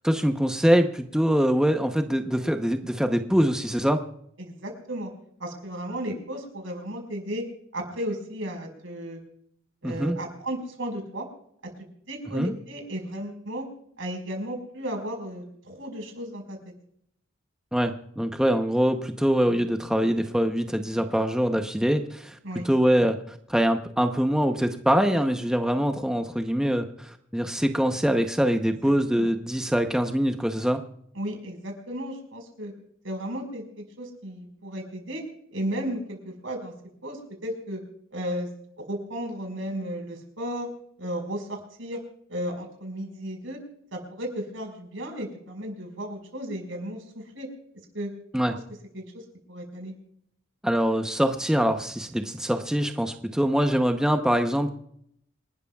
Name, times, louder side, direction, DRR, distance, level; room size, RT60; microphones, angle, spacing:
voice 1, 0.0-4.0 9.8-10.2 12.3-12.5 17.7-22.4 22.6-30.8 48.3-48.6 50.6-54.7, equal, 5° right, 5 dB, 0.8 m, -24 dB
voice 2, 4.4-5.1 5.4-7.4 7.7-9.2 9.8-11.2 11.8-13.6 14.0-16.6 22.4-22.7 28.8-29.3 31.1-32.7 33.0-35.2 35.5-36.7 37.0-37.8 38.1-38.5 38.8-40.7 41.0-42.0 42.3-43.6 43.9-47.5 47.9-48.1 48.9-49.0 49.5-49.9, equal, 80° right, 3 dB, 5.0 m, -34 dB
28.0 x 12.5 x 2.3 m, 0.68 s
head